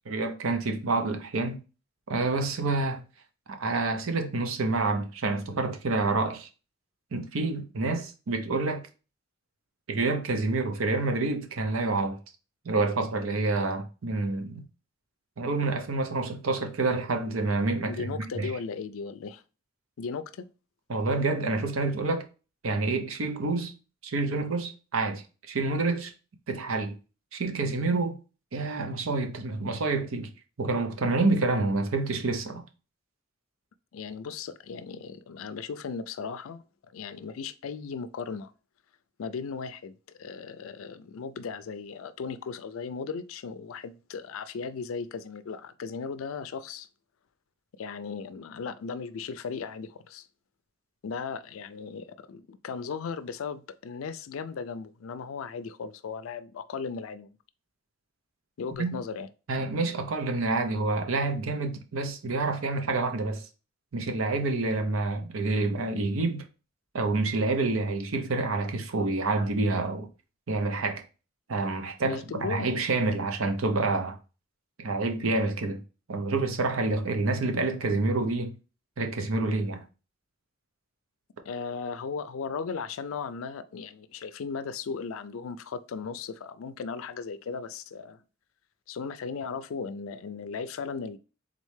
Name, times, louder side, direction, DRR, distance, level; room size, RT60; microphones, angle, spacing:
voice 1, 0.1-1.6 2.1-3.0 3.5-6.5 7.1-8.9 9.9-12.2 12.6-14.6 15.4-18.0 18.4-18.5 20.9-22.2 22.6-23.7 24.0-26.1 26.5-27.0 27.3-28.2 28.5-30.3 30.6-32.6 58.8-59.0 59.5-63.4 63.9-66.4 66.9-70.1 70.5-71.0 71.5-72.2 72.5-74.2 74.8-75.8 76.1-78.6 79.0-79.8, right 3 dB, 85° right, 0.7 m, -28 dB
voice 2, 17.8-19.4 20.0-20.5 33.9-38.5 39.2-46.9 47.8-50.3 51.0-57.4 58.6-59.3 72.0-72.7 81.5-88.2 88.9-91.2, left 5 dB, 80° left, 0.4 m, -37 dB
3.9 x 3.1 x 3.2 m
head